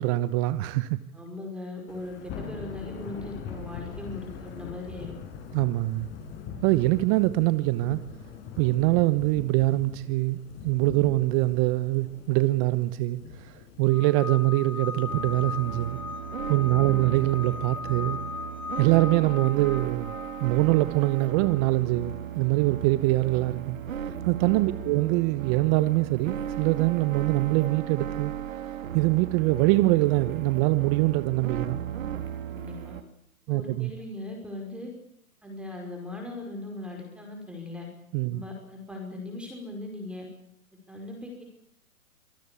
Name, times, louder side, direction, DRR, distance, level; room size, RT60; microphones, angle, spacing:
voice 1, 0.0-1.0 5.5-6.1 6.6-8.0 8.6-10.4 10.6-16.0 16.5-18.2 18.8-20.1 20.4-23.8 24.2-28.3 28.9-31.8 33.5-33.9 38.1-38.4, right 19 dB, 25° right, 1.0 m, -24 dB
voice 2, 1.1-5.2 16.7-17.1 24.7-25.0 32.5-32.9 33.5-34.9 35.4-37.9 38.3-40.3 40.9-41.4, left 2 dB, ahead, 5.3 m, -39 dB
Thunder / Rain, 1.9-15.9, left 6 dB, 25° left, 6.1 m, -42 dB
sound 1, 13.9-21.7, left 5 dB, 85° left, 6.2 m, -38 dB
sound 2, 15.1-33.0, right 10 dB, 65° right, 3.2 m, -36 dB
26.0 x 18.5 x 8.5 m
hypercardioid pair, 135°, 44 cm